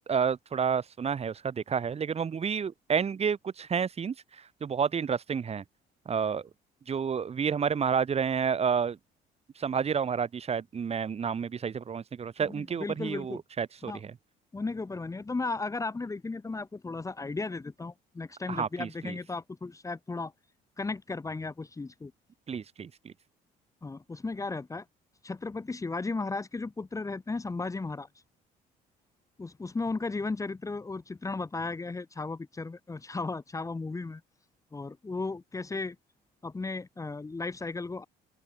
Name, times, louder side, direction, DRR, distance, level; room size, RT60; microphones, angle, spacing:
voice 1, 0.1-5.6 6.0-6.5 6.9-9.0 9.6-14.1 18.5-19.1 22.5-23.1, right 6 dB, 35° right, 6.6 m, -30 dB
voice 2, 12.4-13.4 13.8-14.0 14.5-20.3 20.8-22.1 23.8-24.8 25.2-28.1 29.4-34.2 34.7-36.0 36.4-38.1, left 3 dB, 20° left, 3.1 m, -35 dB
open air
cardioid pair, 110°, 17 cm